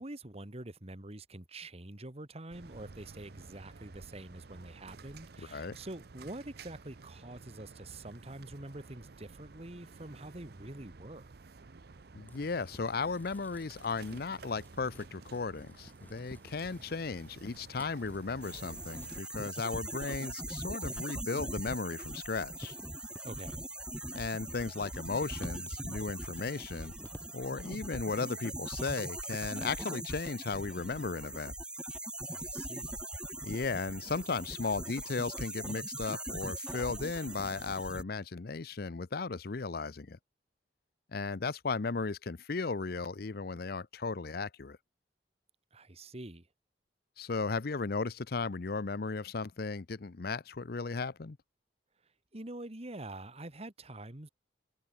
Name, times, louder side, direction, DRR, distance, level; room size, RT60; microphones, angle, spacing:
voice 1, 0.0-11.2 23.2-23.7 32.3-33.0 45.7-46.5 52.3-54.3, right 1 dB, 35° right, 1.8 m, -46 dB
sound 1, 2.5-19.2, right 3 dB, 65° right, 0.7 m, -52 dB
voice 2, 5.4-5.8 12.1-22.7 24.1-26.9 27.3-31.5 33.4-40.2 41.1-44.8 47.2-51.4, left 4 dB, 60° left, 0.7 m, -36 dB
sound 2, 11.9-27.4, equal, 10° left, 1.6 m, -56 dB
sound 3, 18.4-38.0, right 1 dB, 5° right, 1.3 m, -41 dB
head